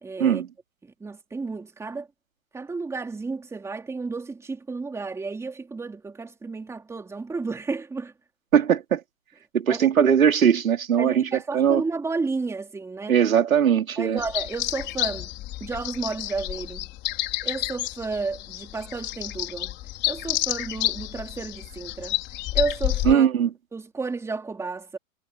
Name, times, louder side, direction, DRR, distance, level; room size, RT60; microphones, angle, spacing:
voice 1, 0.0-0.4 1.0-2.1 2.5-8.1 9.7-10.1 11.0-13.2 14.0-15.3 15.6-16.9 17.4-19.7 20.1-22.2 22.5-23.3 23.7-25.0, right 4 dB, 5° right, 3.0 m, -32 dB
voice 2, 8.5-9.0 9.5-11.8 13.1-14.2 23.0-23.5, right 8 dB, 85° right, 3.1 m, -20 dB
sound 1, 14.2-23.1, left 15 dB, 25° left, 4.5 m, -30 dB
hypercardioid pair, 140°, 40 cm